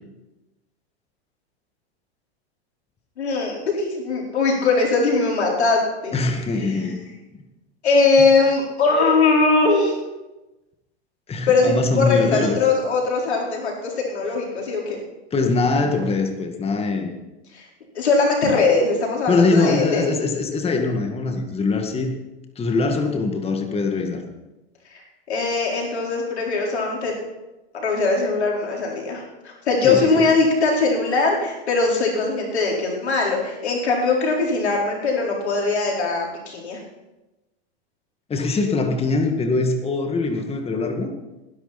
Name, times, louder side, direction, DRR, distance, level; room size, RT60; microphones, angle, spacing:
voice 1, 3.2-6.2 6.6-6.8 7.8-10.0 11.5-15.0 17.5-17.6 17.9-20.1 24.9-27.1 27.7-36.8, left 3 dB, 90° left, -2 dB, 4.5 m, -21 dB
voice 2, 6.1-7.0 11.3-12.6 15.3-17.1 19.3-22.1 22.6-24.2 29.8-30.3 38.3-41.1, left 3 dB, 20° left, 4 dB, 1.8 m, -22 dB
19.5 x 11.0 x 4.2 m, 1.0 s
hypercardioid pair, 110°, 32 cm